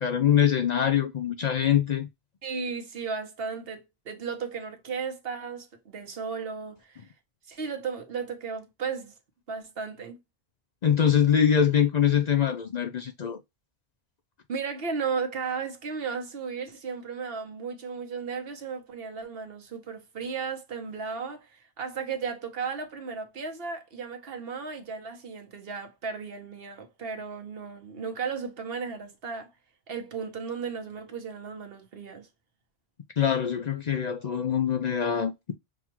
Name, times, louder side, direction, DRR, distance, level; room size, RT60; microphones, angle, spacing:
voice 1, 0.0-2.1 10.8-13.4 33.2-35.5, left 8 dB, 55° left, 0.5 m, -24 dB
voice 2, 2.4-7.1 7.5-9.1 9.5-10.2 14.5-29.5 29.9-32.3, right 5 dB, 70° right, 1.1 m, -35 dB
5.9 x 2.4 x 2.9 m
omnidirectional pair, 1.1 m